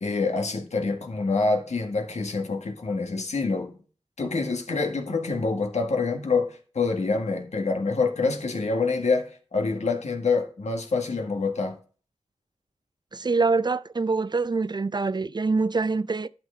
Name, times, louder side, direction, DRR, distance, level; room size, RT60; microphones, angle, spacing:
voice 1, 0.0-3.7 4.2-11.8, left 4 dB, 80° left, 1.7 m, -26 dB
voice 2, 13.1-16.3, right 4 dB, 40° right, 0.4 m, -25 dB
11.5 x 6.1 x 4.7 m
wide cardioid pair, 65°, 12 cm